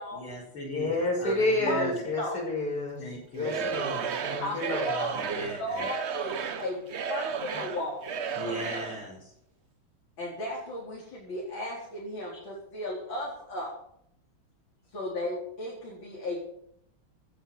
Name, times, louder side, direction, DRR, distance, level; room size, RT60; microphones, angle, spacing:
voice 1, 0.1-2.0 3.0-3.7 5.1-5.9 8.3-9.3, equal, 85° left, -2 dB, 5.4 m, -39 dB
voice 2, 0.7-3.0 3.4-5.0, left 2 dB, 50° left, -1 dB, 6.4 m, -29 dB
Singing / Crowd, 3.4-9.0, right 6 dB, 50° right, 0.8 m, -33 dB
voice 3, 4.4-6.3 6.6-8.0 10.2-13.7 14.9-16.4, left 1 dB, 65° left, -5 dB, 5.0 m, -35 dB
17.0 x 10.0 x 7.1 m, 0.73 s
omnidirectional pair, 2.2 m